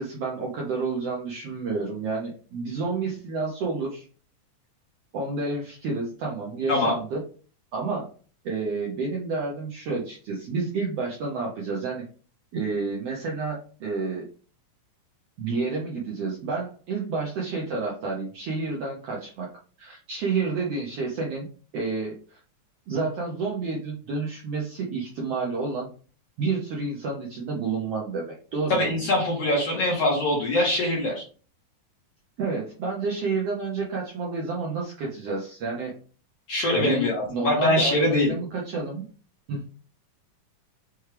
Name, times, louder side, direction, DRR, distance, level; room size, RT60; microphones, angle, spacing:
voice 1, 0.0-4.0 5.1-7.2 7.7-8.0 8.4-12.0 12.5-14.3 15.4-19.5 19.8-21.5 21.7-22.4 22.9-25.9 26.4-28.9 32.4-35.9 36.7-39.0 39.5-39.6, right 4 dB, 75° right, -3 dB, 1.4 m, -30 dB
voice 2, 28.7-31.2 36.5-38.4, left 1 dB, 65° left, -2 dB, 1.7 m, -23 dB
6.0 x 2.3 x 3.3 m, 0.40 s
omnidirectional pair, 3.8 m